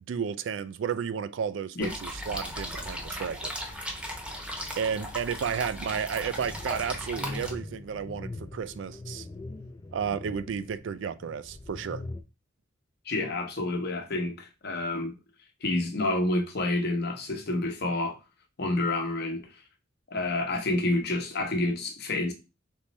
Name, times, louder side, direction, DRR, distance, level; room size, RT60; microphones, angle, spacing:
voice 1, 0.0-3.5 4.8-9.3 9.9-12.0, right 7 dB, 65° right, 0.3 m, -32 dB
sound 1, 1.8-7.5, equal, 5° right, 0.8 m, -37 dB
sound 2, 5.8-12.2, left 2 dB, 20° left, 0.3 m, -42 dB
voice 2, 13.1-15.2 15.6-18.2 18.6-19.5 20.1-22.3, left 2 dB, 55° left, 0.9 m, -28 dB
3.6 x 3.1 x 4.1 m
head